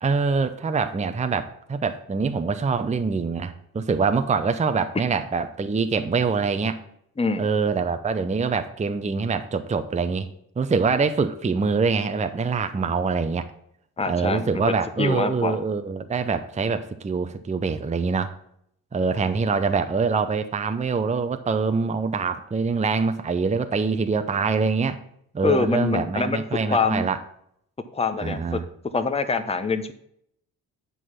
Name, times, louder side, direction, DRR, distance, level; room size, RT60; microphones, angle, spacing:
voice 1, 0.0-6.8 7.4-10.3 10.6-13.5 14.1-18.3 18.9-25.0 25.3-27.2 28.2-28.6, right 4 dB, 15° right, 9 dB, 0.6 m, -24 dB
voice 2, 14.0-14.6 15.0-15.6 25.4-26.4 26.7-27.1 27.9-28.6 28.9-29.9, left 4 dB, 15° left, 9 dB, 0.8 m, -24 dB
7.9 x 4.6 x 5.7 m, 0.72 s
hypercardioid pair, 45°, 44 cm